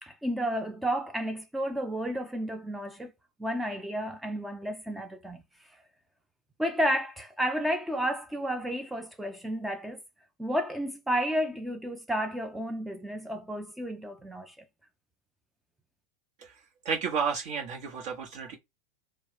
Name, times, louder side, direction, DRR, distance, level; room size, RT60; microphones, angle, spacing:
voice 1, 0.0-3.1 3.4-5.4 6.6-10.0 10.4-14.5, equal, 5° right, 0.5 m, -31 dB
voice 2, 16.8-18.6, right 6 dB, 55° right, 0.9 m, -31 dB
3.4 x 2.1 x 3.2 m
figure-of-eight pair, 90°, 0 cm